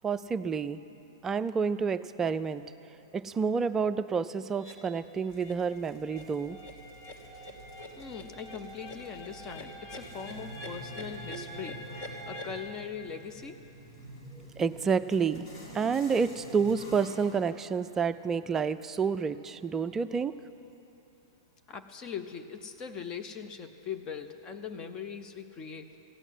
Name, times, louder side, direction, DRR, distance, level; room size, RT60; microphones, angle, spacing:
voice 1, 0.0-0.8 1.2-2.6 3.1-6.6 11.3-11.4 14.3-15.4 15.7-20.3, right 5 dB, 20° right, 11 dB, 0.3 m, -29 dB
sound 1, 4.6-4.7 5.2-5.5 5.9-12.6, left 1 dB, 50° left, 2.8 m, -45 dB
sound 2, 5.3-17.4, equal, 65° left, 3.7 m, -49 dB
voice 2, 8.0-11.8 12.3-13.6 21.7-26.0, left 6 dB, 30° left, 8 dB, 0.7 m, -41 dB
15.5 x 9.0 x 7.8 m, 3.0 s
hypercardioid pair, 110°, 2 cm